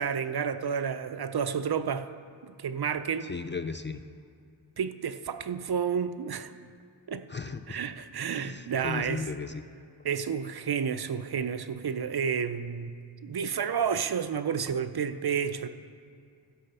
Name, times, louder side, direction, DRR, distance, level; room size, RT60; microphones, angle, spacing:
voice 1, 0.0-2.1 2.4-3.3 4.8-6.5 7.1-7.2 7.7-9.2 10.0-12.9 13.2-15.7, right 7 dB, 55° right, 11 dB, 0.6 m, -30 dB
voice 2, 3.2-4.0 7.3-7.8 8.3-9.6, left 4 dB, 25° left, 9 dB, 0.4 m, -36 dB
14.0 x 6.8 x 5.5 m, 2.4 s
wide cardioid pair, 70°, 47 cm